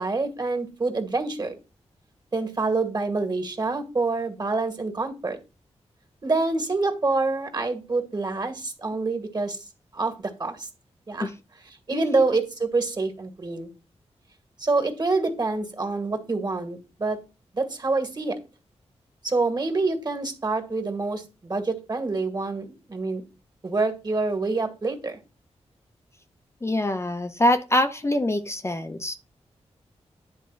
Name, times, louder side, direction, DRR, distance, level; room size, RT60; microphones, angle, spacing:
voice 1, 0.0-1.6 2.3-5.4 6.2-9.6 9.9-10.7 11.1-11.3 11.7-13.7 14.6-17.2 17.5-18.4 19.2-23.3 23.6-25.2, right 3 dB, 35° right, 6 dB, 2.1 m, -26 dB
voice 2, 11.9-12.3 26.6-29.1, left 1 dB, 25° left, 7 dB, 0.7 m, -24 dB
10.5 x 3.6 x 5.8 m, 0.29 s
wide cardioid pair, 90°, 11 cm